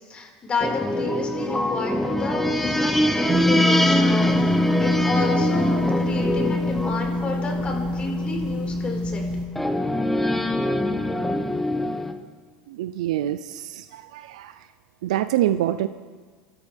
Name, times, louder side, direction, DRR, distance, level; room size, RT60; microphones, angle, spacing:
voice 1, 0.1-3.0 3.3-9.3, left 4 dB, 30° left, 0 dB, 5.0 m, -31 dB
sound 1, 0.6-8.5 9.6-12.1, left 1 dB, 5° left, 1.2 m, -24 dB
sound 2, 3.3-9.5, left 1 dB, 30° right, 2.5 m, -24 dB
voice 2, 12.7-14.6 15.0-15.9, right 12 dB, 80° right, 12 dB, 0.5 m, -26 dB
29.0 x 13.5 x 3.5 m, 1.5 s
hypercardioid pair, 85°, 4 cm